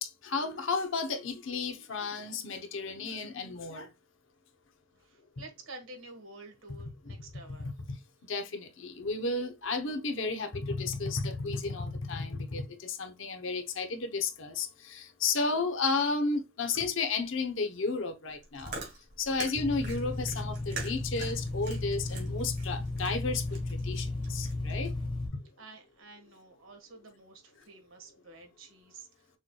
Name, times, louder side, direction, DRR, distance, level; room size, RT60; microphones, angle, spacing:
voice 1, 0.0-3.9 8.3-18.8 19.2-23.6 23.8-24.9, left 4 dB, 70° left, 0.8 m, -33 dB
voice 2, 5.0-7.7 25.6-29.3, right 2 dB, 80° right, 1.5 m, -50 dB
Chewing mastication, 18.3-24.7, right 3 dB, 50° right, 2.2 m, -44 dB
sound 1, 19.5-25.3, left 2 dB, 25° left, 1.4 m, -34 dB
6.5 x 3.1 x 2.3 m
head